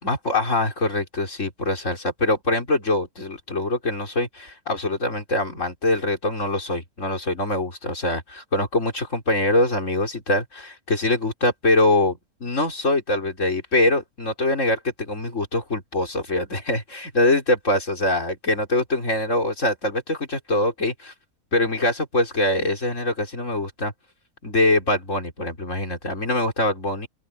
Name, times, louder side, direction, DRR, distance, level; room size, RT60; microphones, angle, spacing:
voice 1, 0.0-21.1 21.5-23.9 24.4-27.1, left 2 dB, 55° left, 4.7 m, -23 dB
open air
omnidirectional pair, 1.5 m